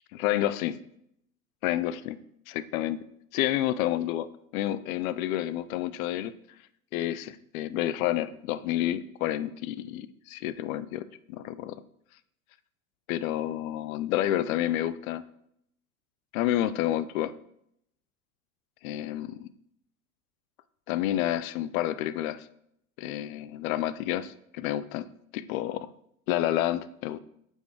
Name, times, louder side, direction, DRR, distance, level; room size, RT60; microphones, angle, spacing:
voice 1, 0.1-0.8 1.6-2.2 2.5-3.0 3.3-6.3 6.9-11.8 13.1-15.2 16.3-17.3 18.8-19.5 20.9-22.5 23.0-25.1 25.3-25.9 26.3-27.2, left 13 dB, 65° left, 15 dB, 0.6 m, -29 dB
8.0 x 4.5 x 4.7 m, 0.74 s
hypercardioid pair, 100°, 44 cm